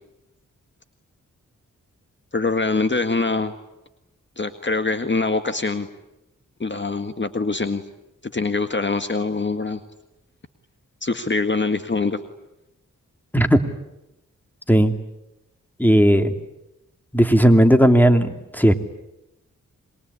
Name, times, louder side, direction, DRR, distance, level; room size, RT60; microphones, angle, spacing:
voice 1, 2.3-3.5 4.4-5.9 6.6-7.8 8.2-9.8 11.0-12.2, left 3 dB, 35° left, 8 dB, 1.7 m, -24 dB
voice 2, 13.3-13.6 14.7-14.9 15.8-16.3 17.1-18.7, equal, 5° left, 7 dB, 2.8 m, -15 dB
26.5 x 22.5 x 9.9 m, 0.93 s
cardioid pair, 55°, 32 cm